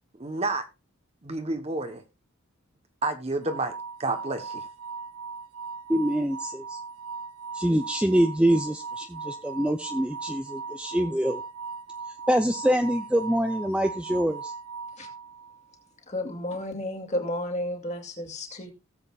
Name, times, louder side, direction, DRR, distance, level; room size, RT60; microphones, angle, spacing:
voice 1, 0.2-0.6 1.2-2.0 3.0-3.7 4.0-4.6, right 2 dB, 30° right, 1.0 m, -29 dB
sound 1, 3.4-15.6, right 5 dB, 80° right, 0.6 m, -39 dB
voice 2, 5.9-6.8 7.5-11.4 12.3-14.5, equal, 5° right, 0.5 m, -25 dB
voice 3, 16.1-18.7, left 1 dB, 35° left, 2.3 m, -32 dB
18.0 x 7.7 x 2.4 m
head